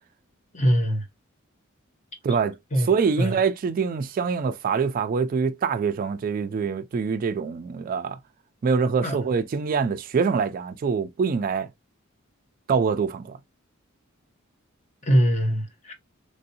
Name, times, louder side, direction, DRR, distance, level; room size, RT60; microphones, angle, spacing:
voice 1, 0.5-1.0 2.7-2.9 3.2-3.4 9.0-9.2 15.1-15.9, equal, 35° left, 0.9 m, -22 dB
voice 2, 2.2-8.2 8.6-11.7 12.7-13.4, right 5 dB, 45° right, 0.3 m, -25 dB
3.3 x 2.6 x 2.7 m
head